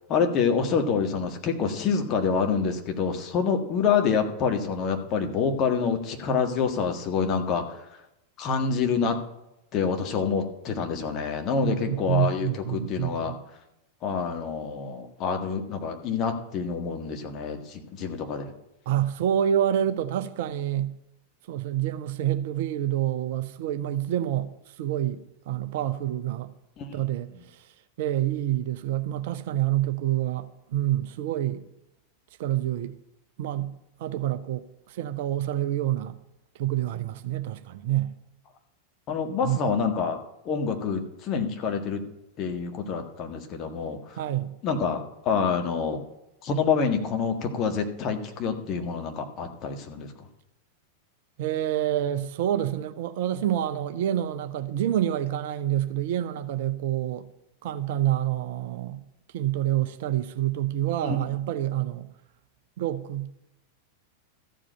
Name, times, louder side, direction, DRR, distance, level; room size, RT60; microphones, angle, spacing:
voice 1, 0.1-7.8 8.4-9.2 9.7-13.3 14.0-18.5 26.8-26.9 39.1-42.0 42.4-44.2 44.6-46.0 46.4-50.1 61.0-61.2, left 6 dB, 35° left, 1.7 m, -27 dB
voice 2, 11.6-13.3 18.9-20.9 21.5-24.5 24.8-25.2 25.5-26.5 26.9-27.6 28.0-31.6 32.4-32.9 33.4-33.7 34.0-36.2 36.6-38.1 39.4-39.6 44.2-44.5 51.4-57.3 57.6-59.0 59.3-62.1 62.8-63.3, right 12 dB, 50° right, 0.7 m, -27 dB
13.5 x 5.0 x 8.8 m
figure-of-eight pair, 90°, 0 cm